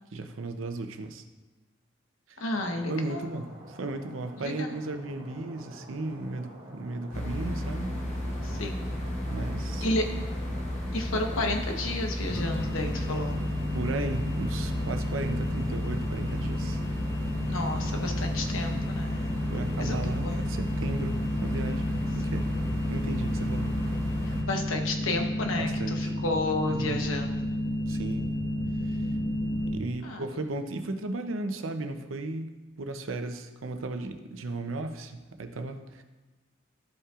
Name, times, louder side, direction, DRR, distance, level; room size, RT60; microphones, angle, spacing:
voice 1, 0.1-1.2 2.3-2.4 2.9-8.0 9.3-9.8 13.7-16.8 19.5-22.5 22.9-23.8 25.6-26.1 26.7-27.0 27.9-28.3 28.8-29.1 29.7-36.0, right 2 dB, 80° right, 7 dB, 0.7 m, -35 dB
voice 2, 2.4-3.4 4.4-4.7 8.4-8.8 9.8-10.0 10.9-13.4 17.5-19.4 19.8-20.4 24.3-27.3 30.0-30.3, left 2 dB, 90° left, 3 dB, 1.0 m, -32 dB
Stream, 2.5-10.8, equal, 50° right, 1.9 m, -48 dB
sound 1, 7.1-24.4, left 1 dB, 40° left, 1.2 m, -33 dB
sound 2, 12.3-29.7, left 1 dB, 65° left, 1.2 m, -32 dB
13.0 x 5.5 x 2.5 m, 1.2 s
head